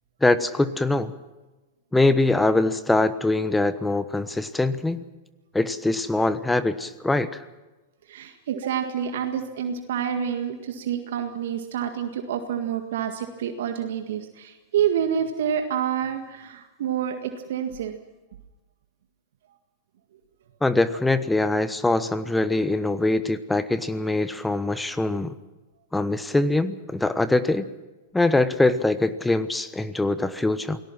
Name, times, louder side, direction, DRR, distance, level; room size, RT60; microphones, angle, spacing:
voice 1, 0.2-1.1 1.9-5.1 5.5-7.4 20.6-25.3 25.9-27.7 28.1-30.8, left 2 dB, 5° left, 13 dB, 1.1 m, -23 dB
voice 2, 8.1-17.9, right 8 dB, 65° right, 6 dB, 1.8 m, -28 dB
28.5 x 18.5 x 5.9 m, 1.1 s
hypercardioid pair, 100°, 0 cm